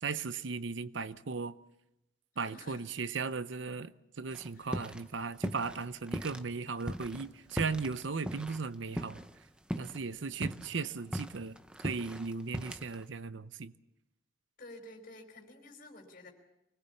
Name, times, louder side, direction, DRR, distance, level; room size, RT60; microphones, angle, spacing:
voice 1, 0.0-1.5 2.4-9.2 9.8-11.6 11.8-13.7, right 4 dB, 65° right, 0.7 m, -37 dB
voice 2, 2.3-2.8 4.5-4.7 14.6-16.3, left 2 dB, 45° left, 4.7 m, -51 dB
sound 1, 4.3-5.1 5.3-6.4 6.8-9.4 9.7-10.0 10.3-13.0, equal, 5° right, 0.8 m, -39 dB
25.0 x 19.5 x 7.1 m
head